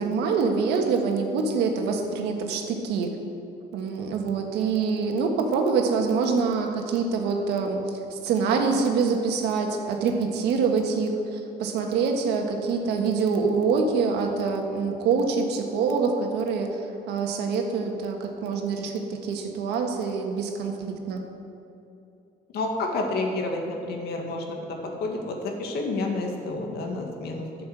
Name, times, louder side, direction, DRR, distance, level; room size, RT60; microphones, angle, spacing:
voice 1, 0.0-3.1 3.7-7.8 8.1-16.7 17.1-21.2, right 5 dB, 85° right, 3 dB, 1.6 m, -25 dB
voice 2, 22.5-27.5, left 2 dB, 70° left, 2 dB, 2.0 m, -29 dB
11.5 x 6.8 x 8.1 m, 2.7 s
cardioid pair, 110°, 17 cm